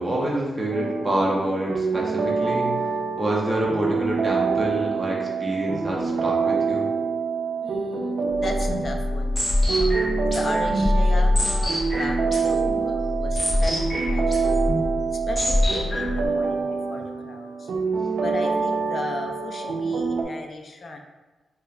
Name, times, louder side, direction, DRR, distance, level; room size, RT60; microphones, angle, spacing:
voice 1, 0.0-2.7 3.2-6.9 11.1-11.2 19.6-19.7, right 1 dB, 20° right, -3 dB, 0.5 m, -27 dB
sound 1, 0.7-20.2, right 5 dB, 85° right, 0.4 m, -26 dB
voice 2, 7.6-9.4 9.8-14.7 15.1-17.7 18.2-21.0, left 2 dB, 40° left, 3 dB, 0.4 m, -36 dB
sound 2, 8.3-16.3, left 1 dB, 10° left, 0.9 m, -24 dB
3.8 x 2.3 x 3.2 m, 1.2 s
wide cardioid pair, 160°, 0 cm